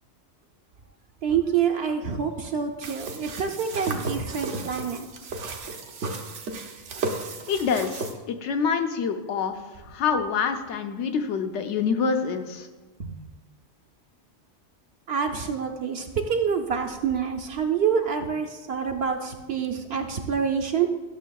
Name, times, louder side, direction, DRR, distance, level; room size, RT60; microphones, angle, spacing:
voice 1, 1.2-5.1 13.0-13.1 15.1-20.9, right 7 dB, 65° right, 4 dB, 0.8 m, -27 dB
sound 1, 2.8-8.2, right 3 dB, 80° right, 1.1 m, -34 dB
voice 2, 7.5-12.7, left 6 dB, 75° left, 6 dB, 1.0 m, -26 dB
12.0 x 6.4 x 2.3 m, 1.2 s
omnidirectional pair, 1.2 m